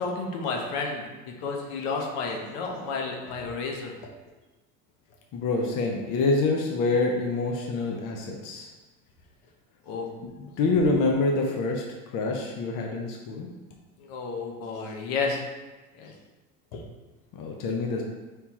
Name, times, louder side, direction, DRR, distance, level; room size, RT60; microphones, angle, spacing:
voice 1, 0.0-3.9 9.9-10.1 14.0-15.4 15.9-16.1 16.7-16.8, left 4 dB, 70° left, 1 dB, 1.0 m, -31 dB
voice 2, 5.3-8.7 10.6-11.8 12.1-13.5 17.4-18.0, left 3 dB, 50° left, 0 dB, 0.7 m, -26 dB
4.5 x 3.4 x 2.9 m, 1.2 s
supercardioid pair, 85°, 43 cm